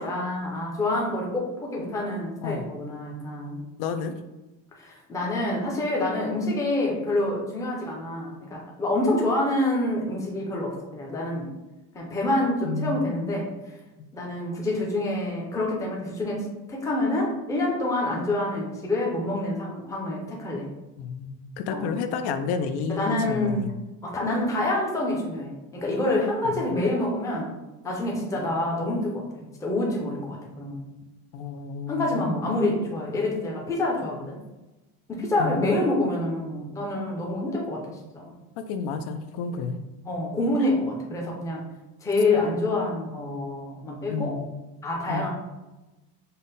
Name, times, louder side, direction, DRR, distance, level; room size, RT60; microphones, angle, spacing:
voice 1, 0.0-3.6 4.8-11.5 11.9-13.5 14.1-20.7 21.7-21.9 22.9-23.6 24.0-27.5 27.8-30.8 31.9-34.4 35.1-38.3 40.1-41.7 42.0-44.4 44.8-45.3, left 2 dB, 10° left, -2 dB, 0.5 m, -27 dB
voice 2, 3.8-4.1 12.6-13.4 14.0-14.1 21.0-23.7 31.3-32.4 35.4-35.7 38.6-39.8 40.6-40.7 44.1-44.5 45.1-45.3, left 5 dB, 70° left, 8 dB, 0.5 m, -31 dB
5.5 x 2.1 x 4.0 m, 1.0 s
cardioid pair, 175°, 41 cm